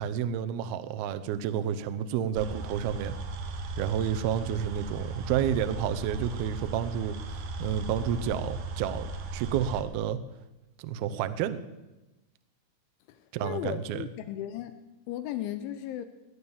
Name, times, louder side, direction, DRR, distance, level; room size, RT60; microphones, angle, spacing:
voice 1, 0.0-3.2 3.8-10.2 10.8-11.6 13.3-14.0, right 9 dB, 90° right, 10 dB, 2.1 m, -30 dB
sound 1, 2.3-9.8, right 3 dB, 65° right, 2.7 m, -37 dB
voice 2, 13.1-14.8 15.1-16.0, left 12 dB, 80° left, 11 dB, 3.0 m, -36 dB
19.5 x 9.8 x 7.2 m, 1.0 s
omnidirectional pair, 5.6 m